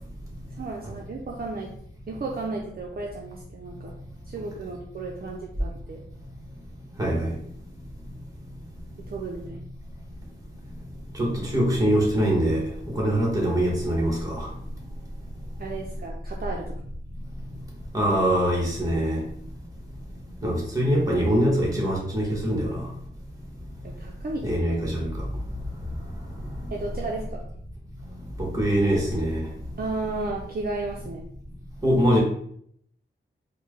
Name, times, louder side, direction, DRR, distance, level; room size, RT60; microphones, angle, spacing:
voice 1, 0.6-1.7 2.1-3.9 4.3-6.0 9.1-9.7 15.6-16.7 23.8-24.4 26.7-27.4 29.8-31.2, right 3 dB, 50° right, -1 dB, 0.5 m, -33 dB
voice 2, 7.0-7.3 11.1-12.6 12.9-14.5 17.9-19.2 20.4-22.9 24.4-25.1 28.4-29.4 31.8-32.2, equal, 15° right, -2 dB, 1.3 m, -23 dB
4.4 x 2.2 x 3.1 m, 0.65 s
wide cardioid pair, 105°, 20 cm